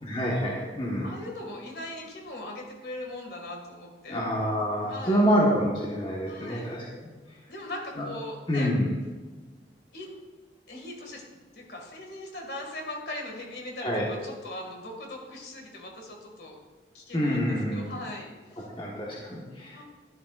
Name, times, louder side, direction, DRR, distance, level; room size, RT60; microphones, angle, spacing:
voice 1, 0.0-1.1 4.1-6.8 8.0-8.1 8.5-8.9 13.8-14.1 17.1-17.9 18.8-19.8, equal, 30° left, -3 dB, 1.4 m, -27 dB
voice 2, 1.0-4.2 4.9-5.2 6.3-6.7 7.5-8.7 9.9-10.1 10.7-11.2 11.5-16.5 16.9-18.7 19.7-19.8, left 1 dB, 65° left, 1 dB, 2.1 m, -40 dB
11.5 x 11.0 x 2.5 m, 1.3 s
head